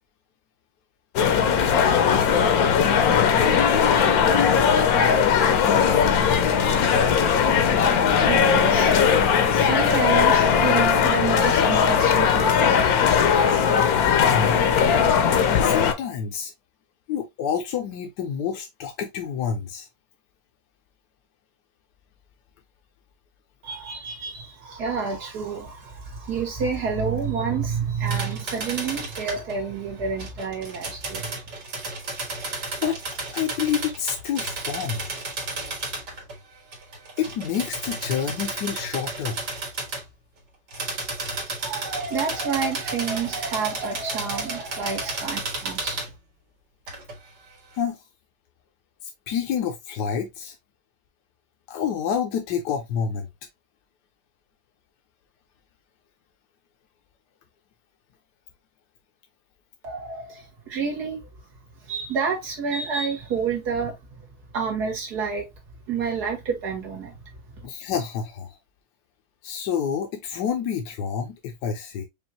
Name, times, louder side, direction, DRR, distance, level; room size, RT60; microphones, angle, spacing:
sound 1, 1.2-15.9, left 7 dB, 70° left, 1.1 m, -19 dB
voice 1, 8.2-8.9 9.2-12.9 23.6-31.3 41.6-46.0 59.8-61.2 61.8-64.0 64.5-65.5 65.9-67.2, right 5 dB, 70° right, 2.1 m, -29 dB
voice 2, 14.3-14.7 15.6-16.5 17.1-19.9 32.8-33.0 33.3-35.0 37.2-39.4 47.8-48.0 49.3-50.5 51.7-53.3 67.6-68.5 69.4-72.1, left 7 dB, 85° left, 1.3 m, -28 dB
sound 2, 28.1-29.6 30.2-36.4 36.7-40.0 40.7-46.1 46.9-47.2, right 3 dB, 90° right, 2.2 m, -33 dB
5.2 x 2.5 x 2.7 m
omnidirectional pair, 1.8 m